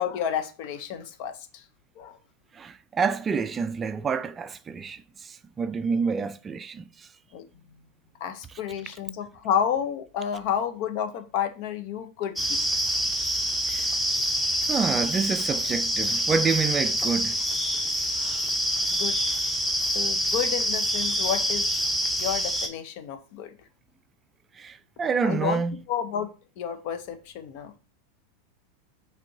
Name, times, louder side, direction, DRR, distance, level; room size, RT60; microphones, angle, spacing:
voice 1, 0.0-1.6 2.0-2.1 7.3-7.4 8.2-12.7 18.1-19.2 19.9-21.7 22.2-23.5 25.2-25.6 25.9-26.3 26.6-27.7, left 8 dB, 55° left, 0.7 m, -30 dB
voice 2, 2.5-7.1 13.6-13.8 14.7-17.4 24.6-25.8, right 5 dB, 25° right, 0.3 m, -28 dB
sound 1, 12.4-22.7, equal, ahead, 0.8 m, -26 dB
5.1 x 3.4 x 2.7 m
hypercardioid pair, 90°, 0 cm